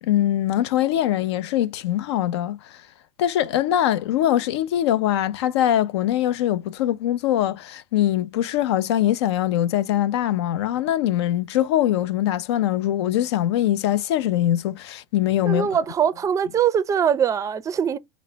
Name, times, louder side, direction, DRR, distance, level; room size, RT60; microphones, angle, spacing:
voice 1, 0.0-2.8 3.2-15.7, left 12 dB, 80° left, 0.4 m, -22 dB
voice 2, 15.5-18.0, right 8 dB, 25° right, 0.4 m, -22 dB
3.8 x 2.0 x 3.1 m
supercardioid pair, 105°, 14 cm